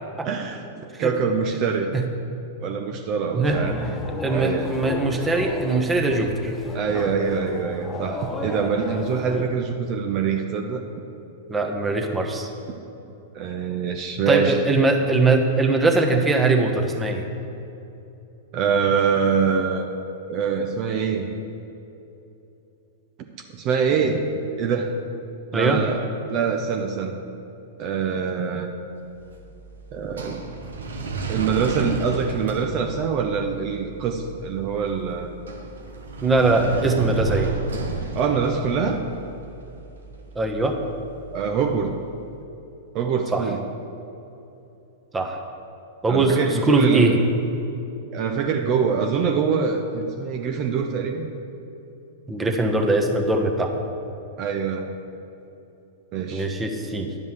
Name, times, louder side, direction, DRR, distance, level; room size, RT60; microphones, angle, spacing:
voice 1, 0.2-1.9 2.6-3.9 4.3-4.7 6.7-10.9 13.3-14.6 18.5-19.9 20.3-21.3 23.5-24.3 24.6-25.0 25.5-27.2 27.8-28.7 29.9-30.4 31.3-35.3 38.1-39.0 41.3-42.0 42.9-43.6 46.1-47.2 48.1-51.3 54.4-54.9 56.1-56.5, right 6 dB, 45° right, 4 dB, 0.8 m, -24 dB
sound 1, 3.4-9.5, left 2 dB, 20° left, 1.2 m, -33 dB
voice 2, 4.2-6.5 11.5-12.5 14.3-17.3 25.5-25.8 36.2-37.5 40.3-40.8 43.3-43.4 45.1-45.4 46.0-47.2 52.3-53.7 56.3-57.1, right 3 dB, 15° right, 3 dB, 1.2 m, -21 dB
sound 2, 29.0-42.1, right 3 dB, 85° right, 1.2 m, -34 dB
10.5 x 5.4 x 8.0 m, 2.9 s
hypercardioid pair, 110°, 0 cm